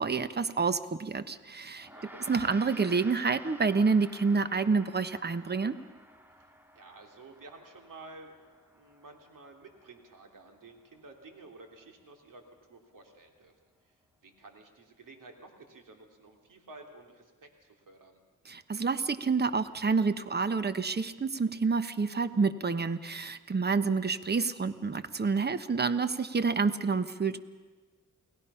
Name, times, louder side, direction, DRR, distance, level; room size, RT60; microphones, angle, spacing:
voice 1, 0.0-1.9 2.3-5.8 18.5-27.4, right 4 dB, 30° right, 12 dB, 1.1 m, -28 dB
Gong, 1.8-11.3, equal, 5° right, 1.8 m, -52 dB
voice 2, 1.9-2.3 6.4-13.5 13.8-14.0 14.2-18.2, right 3 dB, 80° right, 3 dB, 3.2 m, -52 dB
29.0 x 19.0 x 5.7 m, 1.3 s
cardioid pair, 80°, 32 cm